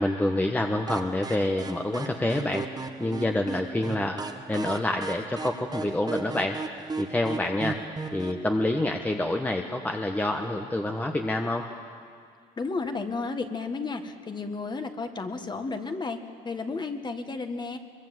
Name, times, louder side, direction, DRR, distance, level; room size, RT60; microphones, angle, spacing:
voice 1, 0.0-6.6 7.0-7.8 8.1-11.6, left 1 dB, 10° left, 3 dB, 1.2 m, -27 dB
sound 1, 0.9-8.4, right 4 dB, 25° right, 1.2 m, -37 dB
voice 2, 12.6-16.2 16.5-17.8, left 4 dB, 25° left, 6 dB, 1.8 m, -32 dB
23.0 x 22.5 x 8.0 m, 2.2 s
cardioid pair, 110°, 17 cm